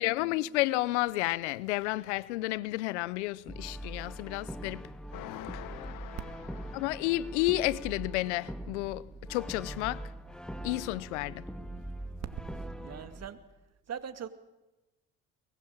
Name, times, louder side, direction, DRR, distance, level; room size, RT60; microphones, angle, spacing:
voice 1, 0.0-4.8 6.7-9.0 9.3-10.0 10.6-11.4, left 18 dB, 90° left, 0.7 m, -31 dB
Brass instrument, 3.5-13.3, right 1 dB, ahead, 1.8 m, -42 dB
sound 1, 5.1-7.9, left 14 dB, 75° left, 1.2 m, -46 dB
voice 2, 12.2-13.4 13.9-14.3, right 7 dB, 50° right, 2.3 m, -40 dB
22.5 x 19.5 x 8.9 m
hypercardioid pair, 65°, 34 cm